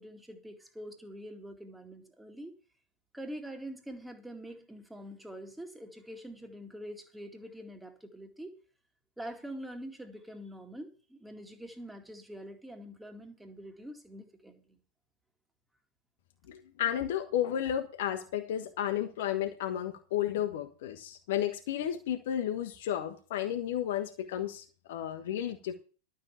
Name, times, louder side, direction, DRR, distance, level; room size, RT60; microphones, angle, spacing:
voice 1, 0.0-2.5 3.1-8.6 9.2-14.8, equal, 5° right, 5 dB, 2.2 m, -45 dB
voice 2, 16.5-25.8, left 11 dB, 55° left, 5 dB, 1.3 m, -33 dB
12.0 x 6.6 x 7.1 m, 0.39 s
figure-of-eight pair, 90°, 0 cm